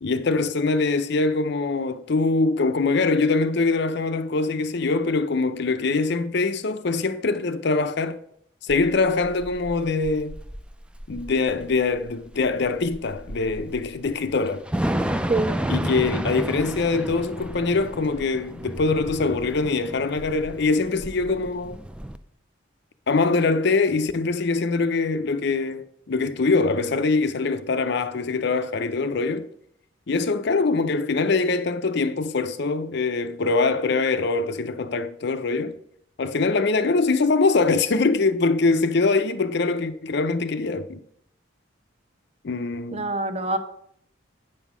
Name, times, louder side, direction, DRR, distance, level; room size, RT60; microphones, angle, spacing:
voice 1, 0.0-8.2 8.6-10.4 11.1-14.6 15.7-21.8 23.1-29.5 30.1-35.8 36.2-41.0 42.4-43.2, left 3 dB, 55° left, 0.5 m, -23 dB
Thunder / Rain, 8.7-22.2, right 1 dB, 5° right, 0.4 m, -32 dB
voice 2, 15.1-15.6 42.9-43.6, right 2 dB, 30° right, 0.8 m, -26 dB
8.9 x 5.5 x 6.0 m
head